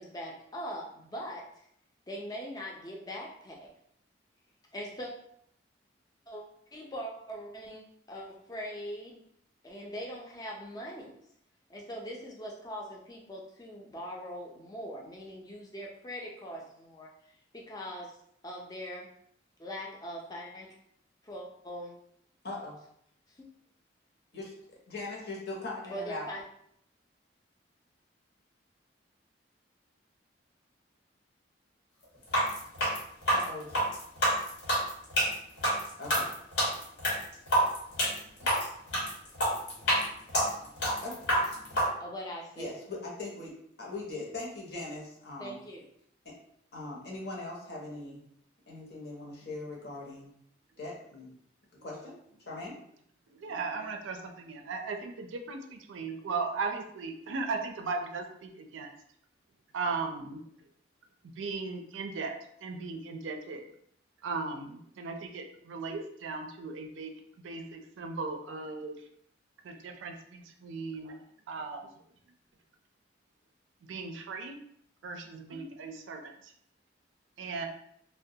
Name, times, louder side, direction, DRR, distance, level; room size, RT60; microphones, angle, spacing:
voice 1, 0.0-1.5 2.1-3.7 4.7-5.1 6.3-6.4 6.7-7.8 8.1-9.2 9.6-11.2 11.7-17.1 17.5-18.2 18.4-19.1 19.6-20.7 21.2-21.9 23.4-23.5 25.9-26.4 42.0-42.8 45.4-45.8, equal, 20° left, -2 dB, 0.4 m, -41 dB
voice 2, 22.4-22.8 24.3-26.3 33.3-33.7 36.0-36.3 38.4-38.5 41.0-41.1 42.6-43.5 43.8-45.6 46.7-48.2 48.7-50.3 50.8-51.3 51.8-52.1 52.5-52.7, left 2 dB, 60° left, -3 dB, 0.7 m, -40 dB
sound 1, 32.2-41.9, equal, 75° left, 1.2 m, -27 dB
voice 3, 53.3-58.9 59.7-60.4 61.2-63.7 64.2-67.1 67.4-69.0 69.6-71.2 71.5-71.9 73.9-74.6 75.0-76.5 77.4-77.7, right 4 dB, 90° right, 4 dB, 0.4 m, -37 dB
2.2 x 2.1 x 2.7 m, 0.69 s
head